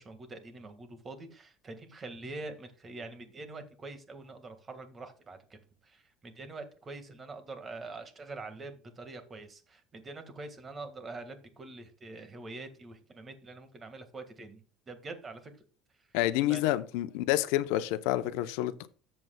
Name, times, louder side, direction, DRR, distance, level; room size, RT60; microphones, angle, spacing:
voice 1, 0.0-5.6 5.8-14.6 14.9-15.5 16.5-16.8, right 3 dB, 25° right, 1.7 m, -45 dB
voice 2, 16.1-18.9, left 14 dB, 80° left, 0.7 m, -28 dB
13.5 x 7.7 x 2.3 m
cardioid pair, 140°, 0 cm